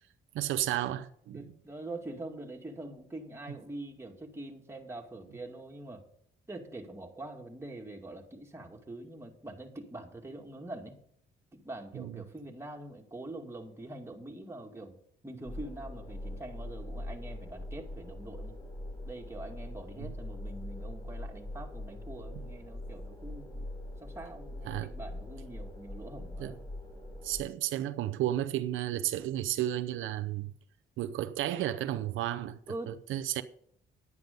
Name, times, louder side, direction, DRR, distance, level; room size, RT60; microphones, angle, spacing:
voice 1, 0.3-1.4 11.9-12.2 20.0-20.1 22.3-22.4 24.7-24.9 26.4-26.5 27.2-30.5 31.0-32.6 32.9-33.4, right 13 dB, 85° right, 0.6 m, -33 dB
voice 2, 1.3-6.0 6.5-11.0 11.5-15.0 15.2-18.6 19.0-23.5 24.0-26.6 32.7-33.0, right 2 dB, 15° right, 2.3 m, -44 dB
sound 1, 15.4-27.4, left 1 dB, 20° left, 3.4 m, -42 dB
10.5 x 9.6 x 5.3 m
cardioid pair, 90°, 20 cm